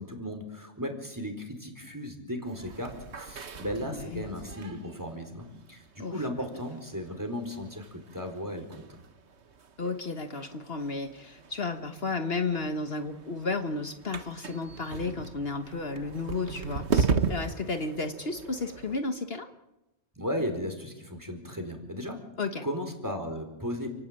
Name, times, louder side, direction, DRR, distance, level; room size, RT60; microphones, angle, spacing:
voice 1, 0.0-8.9 20.2-22.2 22.6-23.9, equal, 15° right, 5 dB, 4.5 m, -36 dB
sound 1, 2.4-19.0, right 5 dB, 65° right, 1.6 m, -37 dB
voice 2, 3.8-4.3 6.0-6.3 9.8-19.5 22.4-22.6, left 3 dB, 55° left, 7 dB, 1.5 m, -33 dB
30.0 x 17.5 x 8.9 m, 0.97 s
omnidirectional pair, 1.2 m